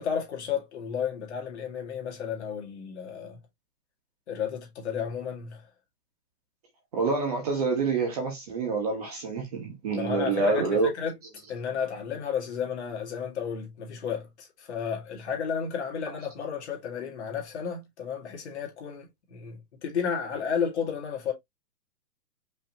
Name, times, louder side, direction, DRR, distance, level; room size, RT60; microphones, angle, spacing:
voice 1, 0.0-3.4 4.3-5.7 9.9-11.1 11.5-21.3, left 7 dB, 45° left, 2.0 m, -32 dB
voice 2, 6.9-10.9, right 4 dB, 25° right, 1.1 m, -27 dB
5.5 x 3.1 x 2.8 m
hypercardioid pair, 170°, 48 cm